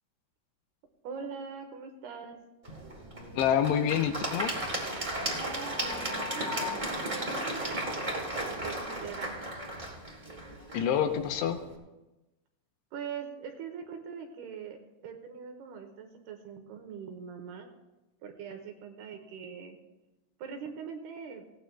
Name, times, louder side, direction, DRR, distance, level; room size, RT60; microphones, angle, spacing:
voice 1, 1.0-2.4 5.3-9.4 12.9-17.7 18.2-19.8 20.4-21.4, right 6 dB, 75° right, 5 dB, 2.7 m, -42 dB
Applause / Crowd, 2.6-11.7, right 1 dB, 25° right, 0.9 m, -35 dB
voice 2, 3.4-4.5 10.7-11.6, left 9 dB, 80° left, 6 dB, 2.7 m, -27 dB
18.0 x 17.0 x 2.2 m, 1.0 s
omnidirectional pair, 5.1 m